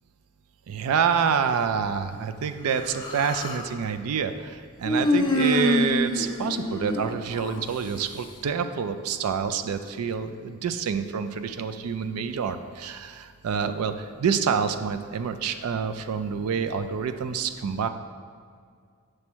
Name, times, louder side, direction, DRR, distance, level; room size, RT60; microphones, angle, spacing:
voice 1, 0.7-17.9, right 6 dB, 85° right, 9 dB, 0.4 m, -27 dB
Human voice, 2.7-3.7 4.8-7.6, left 1 dB, 20° left, 0.5 m, -26 dB
7.1 x 3.3 x 6.1 m, 2.1 s
head